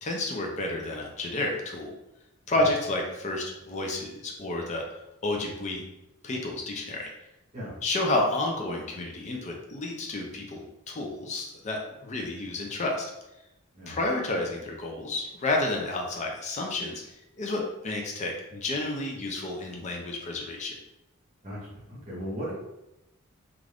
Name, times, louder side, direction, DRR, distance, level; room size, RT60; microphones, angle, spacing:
voice 1, 0.0-1.9 2.5-4.8 5.2-5.8 6.2-7.1 7.8-13.1 13.9-17.0 17.4-20.7, left 2 dB, 30° left, 1 dB, 0.4 m, -30 dB
voice 2, 21.4-22.5, equal, 35° right, -6 dB, 0.9 m, -37 dB
2.5 x 2.4 x 3.3 m, 0.91 s
head